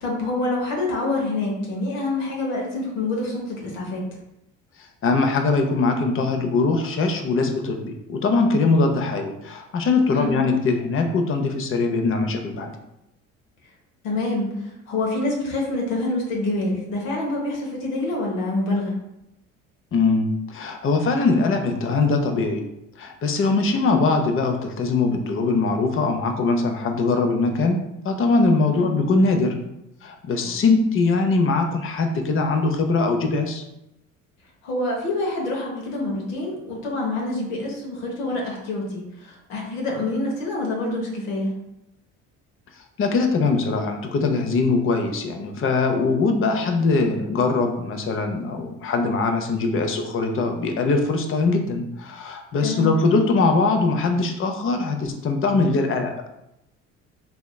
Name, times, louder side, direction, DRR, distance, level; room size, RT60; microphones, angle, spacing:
voice 1, 0.0-4.2 10.1-10.3 14.0-19.0 28.7-28.9 34.6-41.5 52.6-52.9, left 2 dB, 80° left, -2 dB, 1.0 m, -26 dB
voice 2, 5.0-12.7 19.9-22.6 23.0-27.8 28.0-29.5 30.0-33.6 43.0-56.1, left 3 dB, 35° left, 5 dB, 0.6 m, -21 dB
3.4 x 2.8 x 2.2 m, 0.86 s
hypercardioid pair, 60°, 38 cm